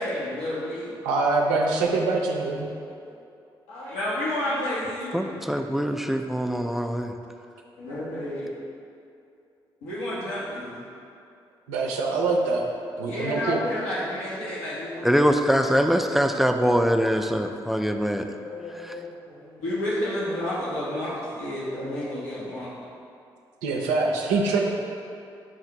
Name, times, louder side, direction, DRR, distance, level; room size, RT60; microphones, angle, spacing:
voice 1, 0.0-1.0 3.0-3.1 3.7-5.3 7.8-8.5 9.8-10.8 13.1-15.1 15.5-16.0 18.4-22.7, left 1 dB, 80° left, -8 dB, 0.8 m, -31 dB
voice 2, 1.0-2.7 11.7-12.7 13.0-13.6 23.6-24.7, right 3 dB, 80° right, 0 dB, 0.4 m, -24 dB
voice 3, 5.1-7.1 15.0-18.3 18.7-19.0, equal, ahead, 5 dB, 0.3 m, -23 dB
6.0 x 2.4 x 2.9 m, 2.6 s
hypercardioid pair, 40°, 12 cm